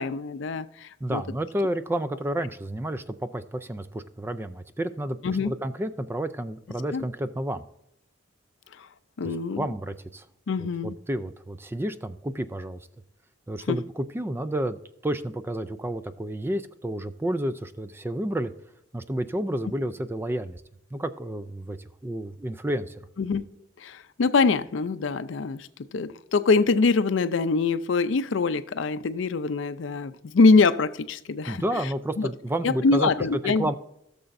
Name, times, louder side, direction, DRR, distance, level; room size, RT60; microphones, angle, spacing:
voice 1, 0.0-1.2 5.2-5.5 6.9-7.0 8.8-8.9 9.2-9.7 10.5-11.0 13.7-13.8 23.2-23.4 23.8-25.7 25.9-31.6 32.2-32.3 32.6-33.7, left 4 dB, 75° left, 0.5 m, -24 dB
voice 2, 1.0-7.6 9.2-10.2 10.6-12.8 13.5-14.8 15.0-18.5 18.9-20.6 20.9-23.0 31.5-33.1 33.4-33.7, right 1 dB, 10° right, 0.3 m, -30 dB
16.0 x 6.9 x 2.6 m
head